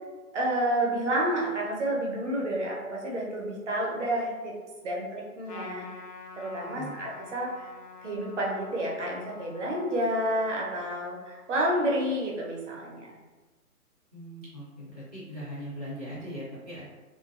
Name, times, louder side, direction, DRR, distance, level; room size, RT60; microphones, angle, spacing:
voice 1, 0.3-4.5 4.8-5.9 6.4-7.7 8.0-13.2, right 1 dB, 50° right, -3 dB, 0.7 m, -30 dB
Trumpet, 5.5-12.2, left 4 dB, 80° left, 0.6 m, -48 dB
voice 2, 14.1-16.8, equal, 30° left, -11 dB, 0.4 m, -40 dB
2.5 x 2.1 x 2.4 m, 1.2 s
figure-of-eight pair, 140°, 45 cm